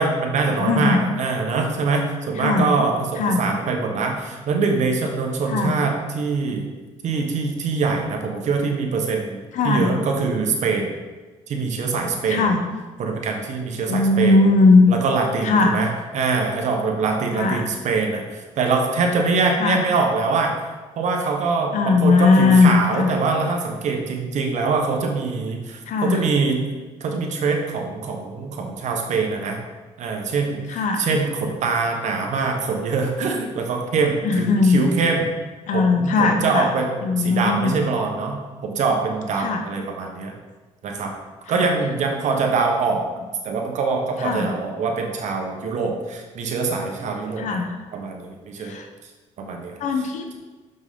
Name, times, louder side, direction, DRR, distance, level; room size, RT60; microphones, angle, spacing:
voice 1, 0.0-6.6 7.0-10.9 11.5-12.4 13.0-14.4 14.9-20.5 21.0-26.6 27.0-29.6 30.0-35.3 35.7-40.3 40.8-41.1 41.5-43.0 43.4-47.6 47.9-48.8 49.4-49.8, right 4 dB, 65° right, 2 dB, 1.2 m, -23 dB
voice 2, 0.6-1.0 2.4-2.7 3.2-3.4 5.5-5.8 9.5-9.9 12.3-12.6 13.9-14.9 15.4-15.8 17.3-17.7 19.6-19.9 21.7-23.1 25.9-26.3 30.7-31.1 34.2-34.9 35.7-36.7 37.0-37.7 39.4-39.7 41.5-41.7 44.2-44.6 47.4-47.8 48.6-48.9 49.8-50.4, left 3 dB, 70° left, 4 dB, 0.8 m, -19 dB
6.6 x 6.0 x 3.7 m, 1.3 s
cardioid pair, 90°, 13 cm